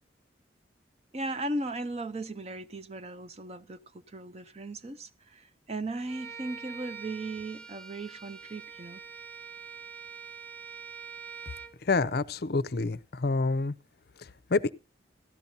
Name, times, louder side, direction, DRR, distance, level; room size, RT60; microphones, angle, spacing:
voice 1, 1.1-9.0, right 2 dB, 35° right, 0.6 m, -37 dB
Bowed string instrument, 6.1-11.8, right 6 dB, 55° right, 1.5 m, -44 dB
voice 2, 11.8-13.7 14.2-14.7, left 3 dB, 55° left, 0.6 m, -28 dB
17.5 x 13.5 x 2.8 m
head